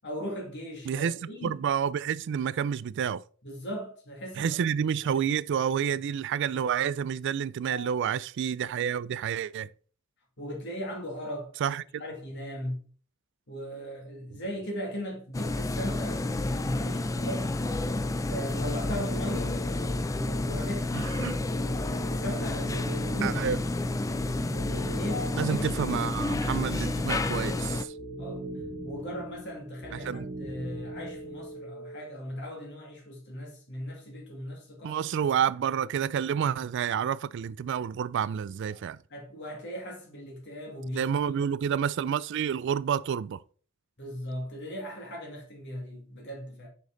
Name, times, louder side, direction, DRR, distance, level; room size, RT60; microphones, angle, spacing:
voice 1, 0.0-1.6 3.4-4.6 5.0-5.2 7.7-7.9 10.4-11.5 12.0-12.8 13.5-17.6 18.3-19.6 20.1-23.4 24.9-26.4 28.2-28.4 28.8-35.0 38.7-38.8 39.1-41.3 44.0-46.7, equal, 60° left, 2.3 m, -38 dB
voice 2, 1.4-3.2 4.4-9.7 11.6-11.8 20.9-21.4 23.2-23.6 25.4-27.9 29.9-30.3 34.8-39.0 40.9-43.4, right 8 dB, 60° right, 0.3 m, -29 dB
sound 1, 15.3-27.9, left 2 dB, 15° left, 0.4 m, -30 dB
Telephone, 17.0-18.0 18.5-20.0 21.5-23.0 24.5-26.0 27.5-29.0 30.5-32.0, right 1 dB, 80° left, 3.4 m, -44 dB
sound 2, 22.4-31.6, right 1 dB, 35° right, 0.8 m, -41 dB
6.4 x 5.3 x 3.9 m
head